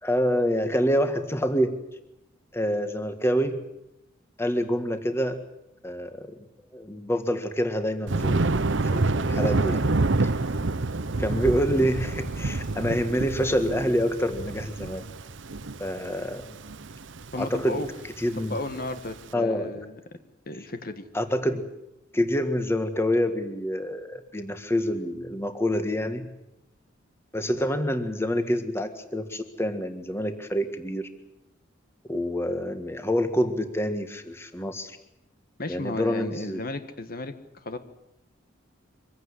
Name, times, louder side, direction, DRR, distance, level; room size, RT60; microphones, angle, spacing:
voice 1, 0.0-1.8 2.5-3.6 4.4-5.4 5.8-6.3 6.7-8.4 8.9-9.9 10.2-10.3 11.2-15.0 15.8-16.5 17.4-17.9 18.2-18.6 19.3-19.7 21.1-21.7 22.1-26.3 27.3-31.1 32.1-35.0 35.7-36.6, equal, 15° left, 8 dB, 1.7 m, -27 dB
Thunder, 8.1-19.2, right 2 dB, 65° right, 0.9 m, -28 dB
voice 2, 17.3-17.9 18.3-20.2 20.5-21.1 35.6-37.4 37.6-37.8, left 2 dB, 45° left, 9 dB, 1.5 m, -34 dB
25.0 x 16.0 x 9.9 m, 0.86 s
head